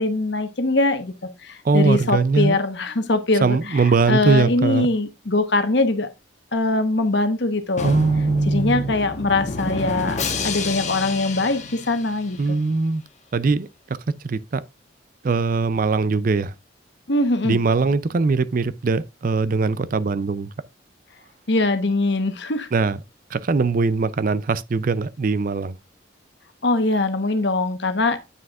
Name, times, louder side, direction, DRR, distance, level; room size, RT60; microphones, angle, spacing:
voice 1, 0.0-6.1 6.5-7.9 8.5-12.6 17.1-17.6 21.5-22.7 26.6-28.2, left 2 dB, 60° left, 1.1 m, -22 dB
voice 2, 1.6-2.6 3.4-4.9 7.8-8.9 12.4-13.0 13.3-14.0 14.2-14.6 15.2-16.5 17.4-20.5 22.7-23.0 23.3-25.7, right 4 dB, 45° right, 0.4 m, -21 dB
Drum, 7.8-12.6, left 3 dB, 35° left, 1.2 m, -30 dB
9.4 x 6.1 x 2.4 m
head